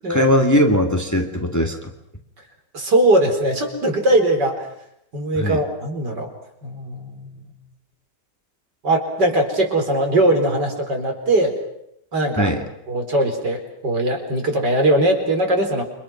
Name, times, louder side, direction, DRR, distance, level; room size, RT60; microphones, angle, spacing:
voice 1, 0.1-1.9 5.3-5.6 12.4-12.6, equal, 10° left, 4 dB, 2.2 m, -19 dB
voice 2, 2.7-4.7 5.1-6.3 6.6-7.3 8.8-11.5 12.1-12.5 12.9-15.8, right 1 dB, 75° right, 3 dB, 5.0 m, -20 dB
29.5 x 26.0 x 6.2 m, 0.75 s
omnidirectional pair, 1.9 m